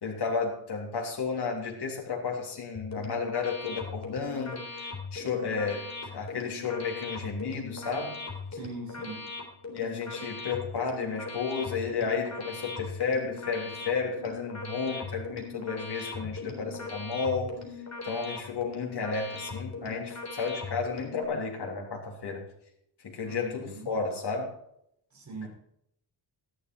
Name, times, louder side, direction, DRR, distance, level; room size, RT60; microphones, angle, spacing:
voice 1, 0.0-4.6 5.1-5.9 6.1-8.2 9.7-17.5 18.0-22.5 23.0-24.5 25.4-25.5, left 5 dB, 55° left, -1 dB, 3.5 m, -32 dB
sound 1, 2.7-21.2, left 4 dB, 35° left, 3.9 m, -40 dB
voice 2, 8.5-9.3 23.2-23.9 25.1-25.5, right 3 dB, 35° right, -3 dB, 6.3 m, -41 dB
14.0 x 11.5 x 4.5 m, 0.72 s
wide cardioid pair, 125°, 48 cm